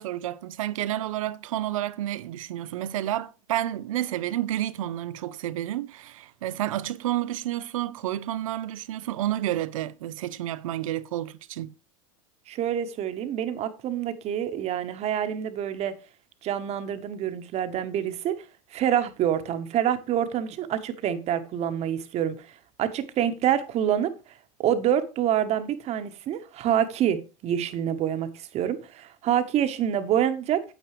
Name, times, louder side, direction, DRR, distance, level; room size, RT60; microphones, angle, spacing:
voice 1, 0.0-11.7, right 13 dB, 80° right, 0.7 m, -30 dB
voice 2, 12.5-16.0 16.4-18.4 18.7-22.5 22.8-24.1 24.6-30.6, right 10 dB, 40° right, 1.2 m, -26 dB
9.1 x 8.5 x 3.2 m
hypercardioid pair, 115°, 17 cm